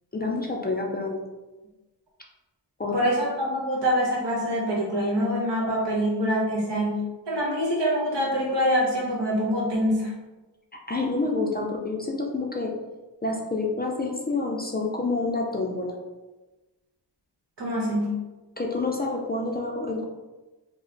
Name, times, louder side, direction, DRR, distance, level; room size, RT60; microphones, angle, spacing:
voice 1, 0.1-1.2 2.8-3.0 10.9-12.7 13.2-15.9 18.6-20.0, left 3 dB, 25° left, -1 dB, 0.4 m, -28 dB
voice 2, 2.9-10.1 17.6-18.2, equal, 75° right, -3 dB, 1.1 m, -25 dB
3.0 x 2.0 x 3.8 m, 1.1 s
wide cardioid pair, 95°, 42 cm